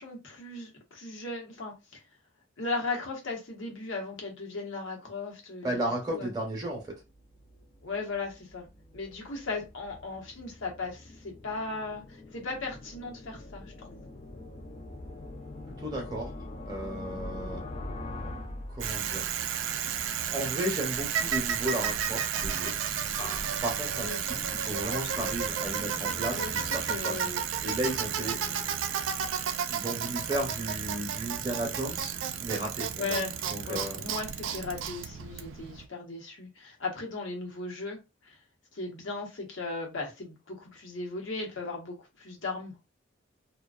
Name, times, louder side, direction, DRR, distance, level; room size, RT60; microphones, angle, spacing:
voice 1, 0.0-2.0 2.6-5.8 6.1-6.3 7.8-8.7 8.9-12.0 12.3-14.0 24.0-24.2 24.9-25.4 26.3-27.4 28.2-28.9 33.0-33.3 33.6-38.0 38.3-38.4 38.7-42.9, left 3 dB, 80° left, 0.9 m, -37 dB
voice 2, 5.6-6.8 15.8-16.3 16.7-17.6 18.7-19.3 20.3-22.8 23.6-27.3 27.6-28.4 29.7-33.2 33.5-34.0, right 1 dB, 20° right, 0.7 m, -34 dB
sound 1, 7.0-19.5, left 2 dB, 35° left, 0.4 m, -43 dB
Bicycle, 18.8-35.9, right 8 dB, 75° right, 0.3 m, -32 dB
sound 2, 23.2-24.5 25.1-27.4 27.8-29.7, left 1 dB, 50° left, 0.8 m, -47 dB
2.4 x 2.2 x 2.3 m
head